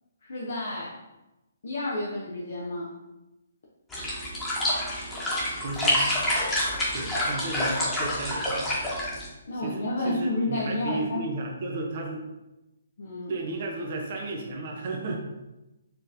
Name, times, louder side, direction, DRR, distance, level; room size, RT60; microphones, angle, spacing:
voice 1, 0.2-0.9 1.6-2.9 9.5-11.2 13.0-13.3, left 1 dB, 65° left, -4 dB, 0.8 m, -30 dB
sound 1, 3.9-9.3, left 1 dB, 10° left, 1.2 m, -27 dB
voice 2, 5.6-6.0 6.9-8.7 9.5-12.2 13.3-15.2, right 2 dB, 45° right, 1 dB, 0.8 m, -33 dB
4.4 x 3.2 x 2.7 m, 0.98 s
figure-of-eight pair, 135°, 0 cm